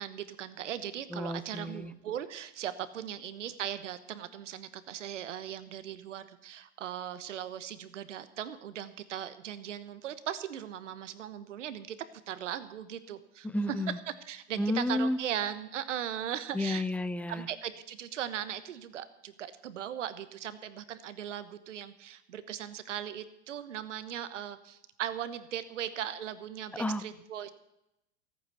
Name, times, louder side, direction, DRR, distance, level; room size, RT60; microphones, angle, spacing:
voice 1, 0.0-11.9 12.3-13.5 14.2-16.8 17.3-27.5, right 10 dB, 85° right, 13 dB, 1.2 m, -38 dB
voice 2, 1.1-1.9 13.4-14.0 14.6-15.2 16.5-17.5 26.8-27.0, left 1 dB, 5° left, 15 dB, 0.5 m, -31 dB
14.5 x 9.2 x 6.9 m, 0.86 s
hypercardioid pair, 105°, 36 cm